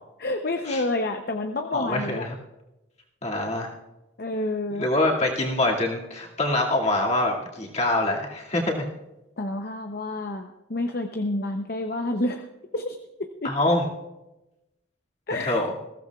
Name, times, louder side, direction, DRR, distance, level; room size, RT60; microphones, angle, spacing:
voice 1, 0.2-2.3 4.2-4.9 9.4-12.5 12.7-13.6 15.3-15.6, left 2 dB, 50° left, 5 dB, 0.7 m, -29 dB
voice 2, 1.7-2.4 3.2-3.7 4.8-8.9 13.4-13.8 15.4-15.7, left 2 dB, 35° left, -2 dB, 2.2 m, -25 dB
20.5 x 15.5 x 2.4 m, 0.97 s
head